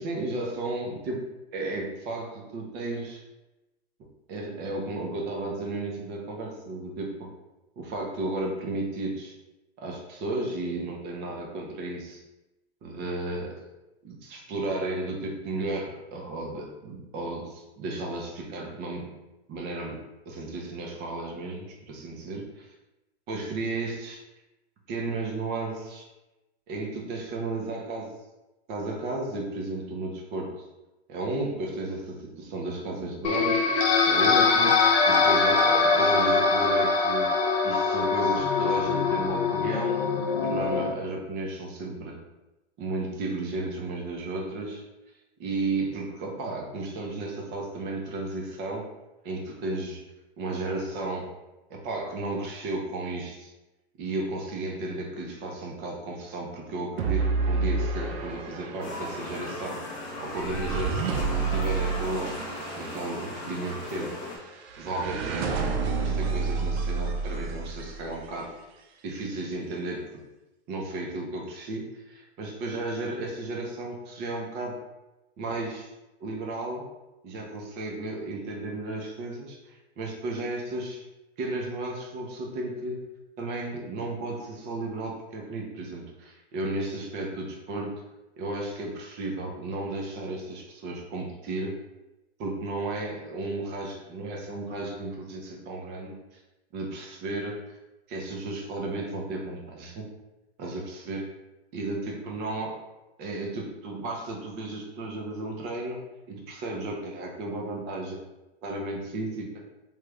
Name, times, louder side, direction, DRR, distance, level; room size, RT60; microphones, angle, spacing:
voice 1, 0.0-3.2 4.3-7.3 7.8-9.3 9.8-12.2 12.8-13.6 14.0-19.1 19.5-22.7 23.3-24.2 24.9-26.0 26.7-28.1 28.7-30.7 31.1-33.7 34.0-37.4 37.6-40.0 40.4-42.2 42.8-44.8 45.4-48.8 49.2-50.0 50.4-51.3 51.7-53.5 54.0-59.8 60.2-61.1 61.5-62.3 62.7-64.1 64.8-68.5 69.0-70.0 70.7-74.8 75.4-75.9 76.2-76.8 77.2-81.1 81.4-83.0 83.4-88.0 88.4-91.8 92.4-96.4 96.7-97.6 98.1-100.1 100.6-101.2 101.7-102.7 103.2-106.0 106.3-108.2 108.6-109.5, right 2 dB, 30° right, 0 dB, 0.6 m, -33 dB
sound 1, 33.2-40.9, left 4 dB, 70° left, 0.7 m, -23 dB
sound 2, 57.0-68.3, right 4 dB, 75° right, 0.6 m, -30 dB
sound 3, 58.8-64.4, left 2 dB, 25° left, 0.6 m, -38 dB
3.1 x 2.3 x 3.1 m, 1.0 s
supercardioid pair, 145°, 32 cm